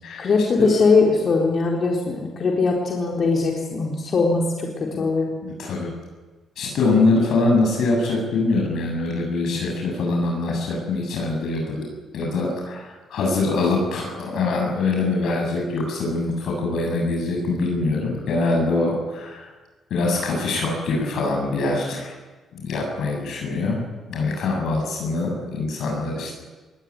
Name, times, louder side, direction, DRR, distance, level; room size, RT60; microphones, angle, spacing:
voice 1, 0.2-5.3, left 4 dB, 50° left, -1 dB, 4.2 m, -21 dB
voice 2, 5.4-5.9 6.6-11.8 12.1-19.5 19.9-22.1 22.5-23.8 24.1-26.4, left 3 dB, 75° left, 0 dB, 7.8 m, -23 dB
21.5 x 19.0 x 9.9 m, 1.2 s
cardioid pair, 90°, 0 cm